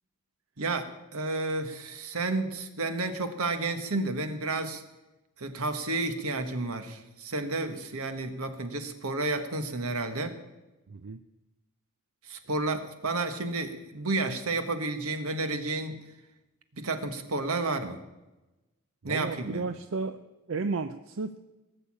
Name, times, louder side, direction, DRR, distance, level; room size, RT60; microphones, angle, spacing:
voice 1, 0.6-4.8 5.4-10.4 12.3-16.0 16.7-18.0 19.0-19.6, right 2 dB, 85° right, 8 dB, 1.5 m, -31 dB
voice 2, 10.9-11.2 19.0-20.2 20.5-21.3, right 4 dB, 60° right, 10 dB, 0.5 m, -33 dB
18.5 x 6.9 x 8.6 m, 1.1 s
head